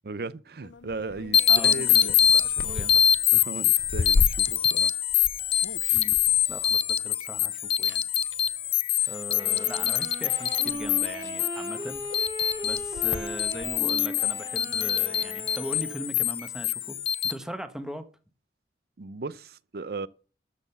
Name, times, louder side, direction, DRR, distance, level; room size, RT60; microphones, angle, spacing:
voice 1, 0.0-2.2 3.3-4.9 8.9-9.2 19.0-20.1, right 3 dB, 55° right, 0.5 m, -37 dB
sound 1, 0.6-7.5 7.8-8.5 9.4-9.8 10.3-10.4 10.6-13.8, left 3 dB, 80° left, 0.6 m, -34 dB
sound 2, 1.3-17.3, left 10 dB, 30° left, 0.4 m, -25 dB
voice 2, 1.5-2.1 2.3-3.1 5.9-6.2 6.5-8.1 9.1-12.0 12.6-17.0 17.2-18.0, equal, 5° right, 1.1 m, -39 dB
Wind instrument woodwind instrument, 9.3-16.2, right 1 dB, 25° right, 2.5 m, -38 dB
13.0 x 6.3 x 6.9 m
head